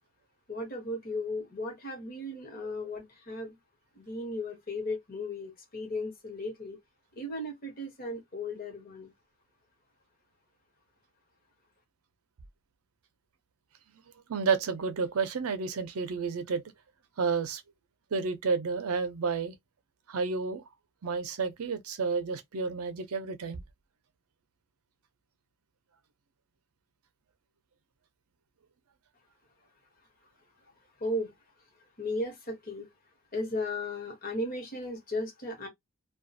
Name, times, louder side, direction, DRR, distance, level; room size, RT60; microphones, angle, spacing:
voice 1, 0.5-3.5 4.0-6.8 7.1-9.1 31.0-31.3 32.0-32.9 33.3-35.7, left 1 dB, 40° left, 0.9 m, -35 dB
voice 2, 14.3-16.6 17.2-17.6 18.1-19.5 20.1-20.6 21.0-23.6, right 5 dB, 80° right, 0.5 m, -30 dB
2.4 x 2.2 x 2.6 m
head